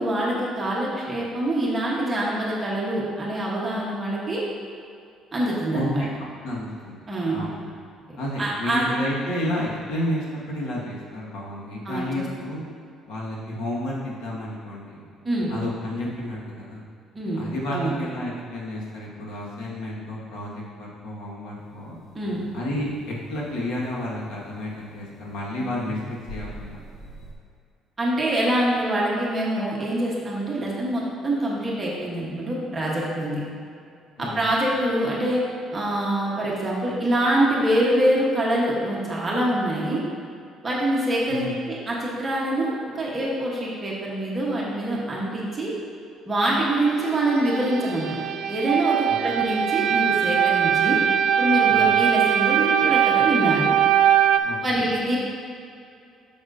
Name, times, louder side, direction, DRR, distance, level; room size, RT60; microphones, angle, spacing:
voice 1, 0.0-4.4 5.3-6.0 7.1-7.4 8.4-8.9 11.8-12.2 15.2-15.5 17.1-17.5 17.7-17.9 22.1-22.4 28.0-33.4 34.2-35.4 35.7-40.0 40.6-45.7 46.3-48.2 48.5-51.0 51.4-53.7 54.6-55.2, right 1 dB, 15° right, -5 dB, 1.1 m, -25 dB
voice 2, 5.7-6.1 6.4-7.0 7.3-7.6 8.2-12.6 13.1-15.1 15.5-16.8 17.3-22.0 22.5-26.8 34.2-34.5 41.3-41.6 51.7-51.9 54.4-54.9, left 1 dB, 75° left, -4 dB, 1.6 m, -31 dB
sound 1, 21.6-27.3, equal, 60° left, 1.1 m, -44 dB
sound 2, 46.9-54.4, right 9 dB, 65° right, 0.3 m, -21 dB
8.5 x 6.3 x 2.6 m, 2.5 s
cardioid pair, 175°, 0 cm